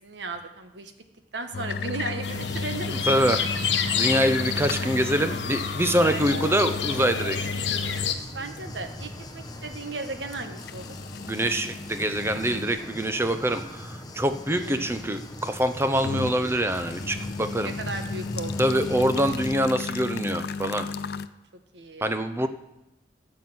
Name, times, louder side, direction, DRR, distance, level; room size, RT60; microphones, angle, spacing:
voice 1, 0.0-0.9 1.3-3.0 6.0-6.4 8.3-11.0 14.5-15.2 17.6-18.7 21.7-22.5, right 3 dB, 80° right, 7 dB, 1.3 m, -36 dB
sound 1, 1.5-8.2 8.6-8.7 9.4-9.5 10.6-12.7 13.2-13.3 15.4-16.4 16.7-21.3, left 4 dB, 60° left, 0.5 m, -34 dB
sound 2, 2.2-8.1, left 8 dB, 80° left, 1.1 m, -30 dB
sound 3, 2.3-19.5, left 1 dB, 20° left, 1.0 m, -39 dB
voice 2, 2.9-3.5 3.9-7.4 11.3-17.7 18.6-20.9 22.0-22.5, right 1 dB, 15° right, 9 dB, 0.7 m, -25 dB
13.5 x 5.7 x 7.8 m, 0.91 s
head